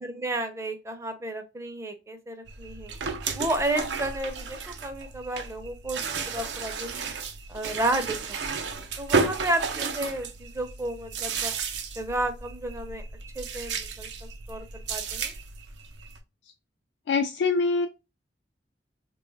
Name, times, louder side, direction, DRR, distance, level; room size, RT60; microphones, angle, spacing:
voice 1, 0.0-2.9 3.3-7.1 7.5-8.4 8.7-11.5 12.0-13.0 13.4-15.3, right 1 dB, 15° right, 7 dB, 0.5 m, -32 dB
sound 1, 2.5-16.2, right 4 dB, 85° right, 0.5 m, -33 dB
voice 2, 17.1-17.9, left 4 dB, 90° left, 6 dB, 0.3 m, -24 dB
3.3 x 2.3 x 3.2 m, 0.27 s
head